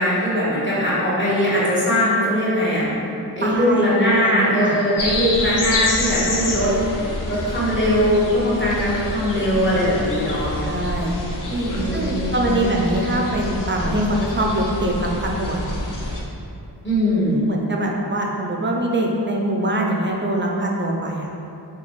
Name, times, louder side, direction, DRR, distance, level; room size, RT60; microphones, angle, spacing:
voice 1, 0.0-2.9 3.4-6.7 7.3-10.5 11.6-12.7 16.8-17.4, equal, 25° left, -9 dB, 1.2 m, -20 dB
voice 2, 3.4-4.7 10.6-11.1 11.5-15.7 17.5-21.3, right 1 dB, 30° right, -1 dB, 0.4 m, -23 dB
sound 1, 5.0-16.2, left 2 dB, 50° left, 0.6 m, -28 dB
3.9 x 2.3 x 3.0 m, 2.7 s
cardioid pair, 45°, 42 cm